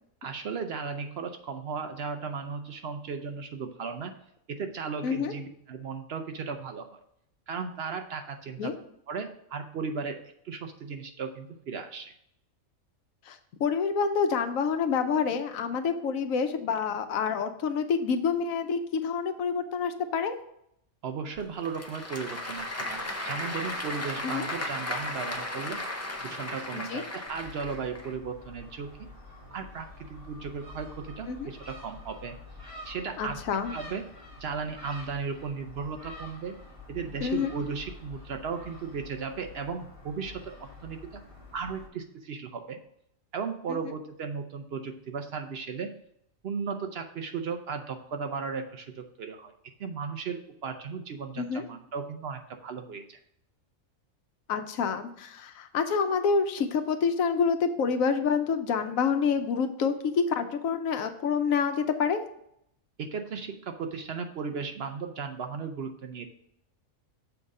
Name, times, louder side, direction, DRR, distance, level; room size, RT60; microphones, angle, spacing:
voice 1, 0.2-4.1 4.5-7.0 7.5-8.7 9.1-10.2 10.4-12.1 21.0-25.8 26.2-29.1 29.5-32.3 32.9-33.4 33.7-34.1 34.4-36.6 36.9-41.2 41.5-42.8 43.3-45.9 46.4-49.5 49.8-53.2 63.0-66.3, right 5 dB, 60° right, 6 dB, 0.7 m, -36 dB
voice 2, 5.0-5.3 8.6-8.7 13.3-20.3 24.2-24.5 26.7-27.0 31.3-31.5 33.2-33.7 37.2-37.5 43.7-43.8 51.4-51.6 54.5-62.3, left 6 dB, 90° left, 8 dB, 1.1 m, -27 dB
Applause / Crowd, 21.4-28.1, left 2 dB, 25° left, 0.3 m, -35 dB
Gull seagull, 27.3-41.9, left 2 dB, 25° right, 1.6 m, -47 dB
6.9 x 3.7 x 5.3 m, 0.73 s
omnidirectional pair, 1.4 m